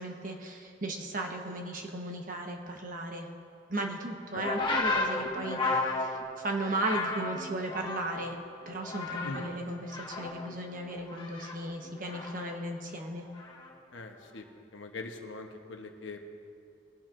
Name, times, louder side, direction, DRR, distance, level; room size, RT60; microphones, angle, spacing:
voice 1, 0.0-3.3 3.7-8.3 8.7-13.2, right 2 dB, 45° right, 2 dB, 1.2 m, -36 dB
sound 1, 4.4-8.3 8.7-9.5 9.9-12.5 13.4-13.7, left 3 dB, 25° left, 1.2 m, -34 dB
voice 2, 13.9-14.4 14.7-16.3, left 3 dB, 75° left, 4 dB, 1.1 m, -42 dB
20.5 x 10.5 x 2.6 m, 2.5 s
head